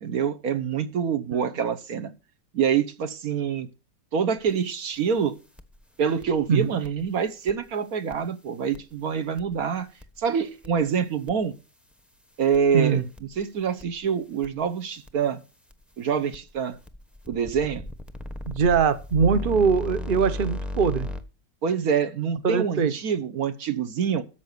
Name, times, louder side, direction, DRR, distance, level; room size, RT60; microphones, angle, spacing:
voice 1, 0.0-2.1 2.5-3.7 4.1-5.3 6.0-9.9 10.2-11.5 12.4-15.4 16.0-16.8 17.3-17.8 21.6-24.2, right 7 dB, 60° right, 1.4 m, -26 dB
sound 1, 4.5-4.6 5.6-5.8 6.2-6.4 6.8-7.0 7.5-7.6 8.1-8.2 8.7-8.8 9.4-9.6 10.0-10.2 10.6-10.8 11.3-11.4 12.5-12.8 13.2-13.4 13.8-14.0 14.4-14.5 15.1-15.2 15.7-15.8 16.3-21.2, left 2 dB, ahead, 0.6 m, -34 dB
voice 2, 18.5-21.1 22.4-22.9, right 6 dB, 45° right, 0.7 m, -22 dB
13.0 x 5.8 x 6.6 m
omnidirectional pair, 1.9 m